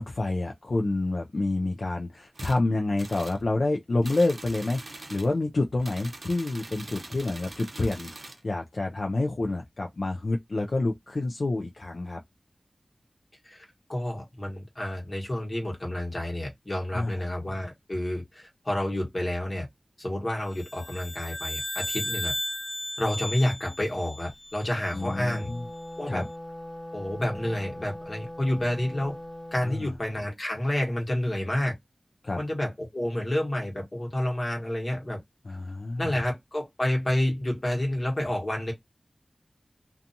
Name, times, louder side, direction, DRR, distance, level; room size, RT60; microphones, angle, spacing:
voice 1, 0.0-12.2 16.9-17.2 24.9-25.6 26.1-26.3 29.6-29.9 32.2-32.4 35.4-36.1, left 2 dB, 70° left, 0.4 m, -28 dB
sound 1, 2.3-2.6 3.0-3.4 4.0-5.3 5.8-8.4, right 2 dB, 60° right, 0.6 m, -43 dB
voice 2, 13.4-19.7 20.0-22.3 23.0-25.5 26.0-26.2 26.9-29.2 29.5-31.7 32.4-35.2 36.0-38.7, left 1 dB, 40° left, 1.2 m, -29 dB
sound 2, 20.5-25.1, left 1 dB, 25° left, 0.6 m, -35 dB
Wind instrument woodwind instrument, 24.7-29.9, left 1 dB, 15° right, 1.0 m, -41 dB
2.6 x 2.3 x 2.6 m
wide cardioid pair, 60°, 0 cm